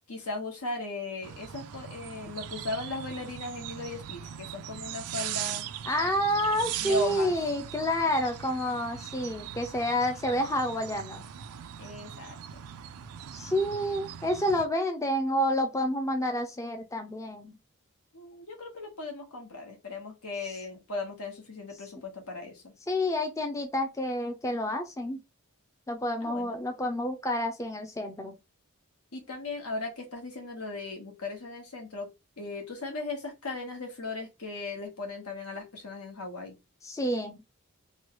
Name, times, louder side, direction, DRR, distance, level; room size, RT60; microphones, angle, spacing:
voice 1, 0.1-5.6 6.8-7.3 11.8-12.4 18.1-22.7 26.2-26.6 29.1-32.1 32.4-36.6, left 3 dB, 85° left, 1.2 m, -37 dB
sound 1, 1.2-14.7, right 10 dB, 80° right, 0.3 m, -40 dB
voice 2, 5.9-11.2 13.3-17.5 22.9-25.2 25.9-28.4 36.8-37.4, equal, 15° left, 0.4 m, -29 dB
3.1 x 2.2 x 3.0 m
head